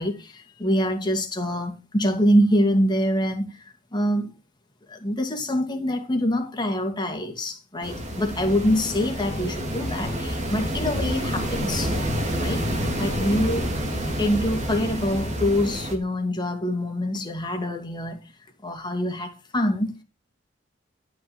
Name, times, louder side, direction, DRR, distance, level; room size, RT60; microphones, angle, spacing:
voice 1, 0.0-4.3 4.9-12.0 12.4-13.7 14.2-18.2 18.6-19.9, equal, 25° left, 2.3 m, -25 dB
sound 1, 7.8-16.0, equal, 40° right, 2.6 m, -28 dB
12.5 x 5.5 x 7.2 m
head